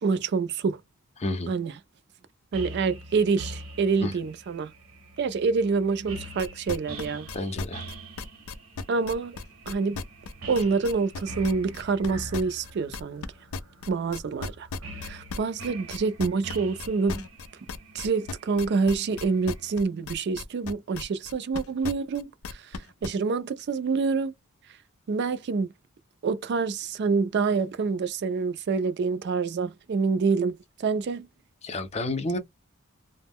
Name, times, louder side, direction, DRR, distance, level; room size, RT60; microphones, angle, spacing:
voice 1, 0.0-0.8 1.5-1.7 2.5-4.7 5.2-7.3 8.9-9.4 9.7-10.0 10.5-13.2 13.9-14.7 15.0-17.2 17.9-24.3 25.1-25.7 26.2-31.3, right 4 dB, 55° right, 0.4 m, -27 dB
voice 2, 1.2-1.5 4.0-4.1 7.3-7.8 31.6-32.4, left 2 dB, 30° left, 0.5 m, -30 dB
sound 1, 2.5-19.8, right 2 dB, 75° right, 0.8 m, -44 dB
sound 2, 6.4-13.3 13.5-23.1, left 4 dB, 90° left, 0.4 m, -36 dB
2.1 x 2.0 x 3.5 m
head